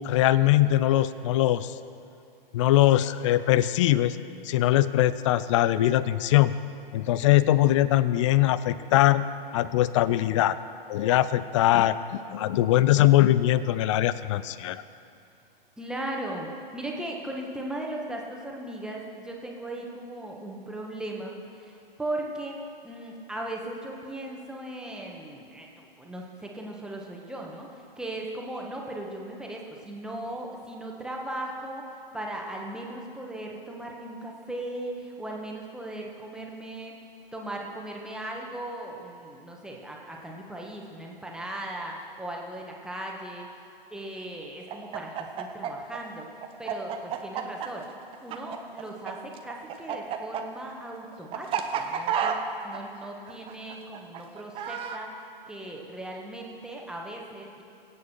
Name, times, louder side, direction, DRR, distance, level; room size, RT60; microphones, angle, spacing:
voice 1, 0.0-1.7 2.5-4.2 4.4-6.5 6.9-9.2 9.5-10.6 10.9-14.8, left 14 dB, 35° left, 15 dB, 0.5 m, -22 dB
voice 2, 15.8-37.0 37.3-43.5 43.9-46.3 46.6-47.9 48.2-57.6, right 1 dB, ahead, -1 dB, 1.6 m, -38 dB
Chicken rooster, 44.7-49.1 49.4-55.0, right 8 dB, 20° right, 0.8 m, -31 dB
23.5 x 8.4 x 4.6 m, 2.5 s
figure-of-eight pair, 120°, 29 cm